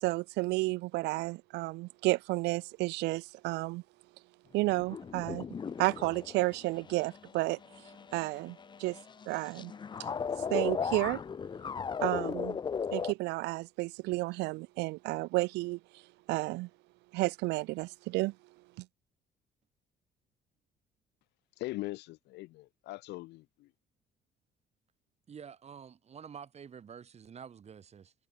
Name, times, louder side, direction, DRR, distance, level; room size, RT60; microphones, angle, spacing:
voice 1, 0.0-3.8 4.5-5.5 5.8-7.6 8.1-9.0 9.3-9.7 10.0-10.1 10.5-11.2 12.0-12.6 12.9-16.0 16.3-16.7 17.1-18.3 18.8-18.9, right 22 dB, 85° right, 0.5 m, -32 dB
sound 1, 4.7-13.1, left 6 dB, 25° left, 0.6 m, -37 dB
voice 2, 21.6-23.7, left 19 dB, 85° left, 2.5 m, -41 dB
voice 3, 25.3-28.1, right 7 dB, 40° right, 2.6 m, -48 dB
cardioid pair, 110°, 17 cm